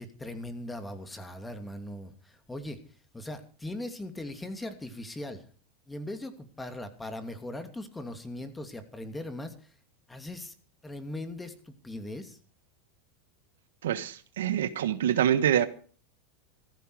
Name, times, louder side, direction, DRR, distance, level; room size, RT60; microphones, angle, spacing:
voice 1, 0.0-2.8 3.1-5.4 5.9-9.5 10.1-10.5 10.8-12.4, left 1 dB, 10° left, 2.7 m, -39 dB
voice 2, 13.8-15.7, right 10 dB, 85° right, 1.3 m, -26 dB
15.0 x 14.5 x 4.9 m
supercardioid pair, 115°, 0 cm